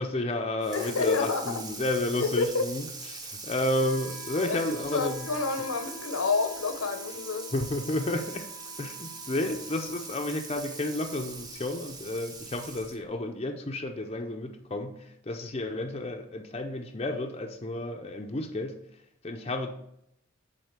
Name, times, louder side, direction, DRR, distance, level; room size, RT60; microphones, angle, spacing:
voice 1, 0.0-5.3 7.5-8.5 8.8-18.8 19.2-19.8, left 1 dB, 30° left, 4 dB, 0.6 m, -31 dB
Water tap faucet / Sink (filling or washing), 0.6-13.1, right 3 dB, 20° right, 0.7 m, -42 dB
voice 2, 0.7-1.6 2.2-2.6 4.4-7.5, left 4 dB, 85° left, 8 dB, 0.9 m, -29 dB
Wind instrument woodwind instrument, 3.7-13.7, right 1 dB, 85° right, 2.0 m, -50 dB
8.0 x 3.8 x 6.5 m, 0.77 s
head